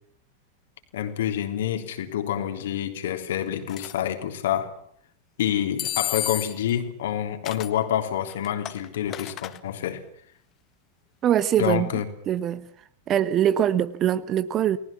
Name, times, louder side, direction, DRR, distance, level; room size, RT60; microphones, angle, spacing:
voice 1, 0.9-4.7 5.4-10.0 11.6-12.1, left 10 dB, 60° left, 3.5 m, -27 dB
sound 1, 3.7-3.9 5.8-6.7 7.5-7.8 8.3-9.6, left 13 dB, 35° left, 1.7 m, -31 dB
voice 2, 11.2-11.9 12.3-12.7 13.1-14.8, right 10 dB, 30° right, 1.2 m, -22 dB
30.0 x 19.5 x 7.3 m
figure-of-eight pair, 90°, 0 cm